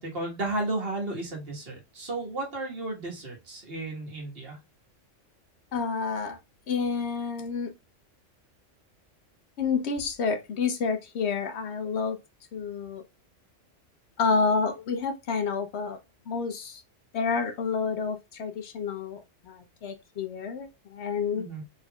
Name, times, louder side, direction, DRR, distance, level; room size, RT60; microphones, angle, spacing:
voice 1, 0.0-4.6 21.4-21.6, right 2 dB, 50° right, 1.6 m, -33 dB
voice 2, 5.7-6.4 6.7-7.7 9.6-12.2 12.5-13.0 14.2-16.0 16.3-16.8 17.1-21.5, left 5 dB, 65° left, 0.8 m, -29 dB
4.0 x 3.5 x 2.2 m
omnidirectional pair, 1.3 m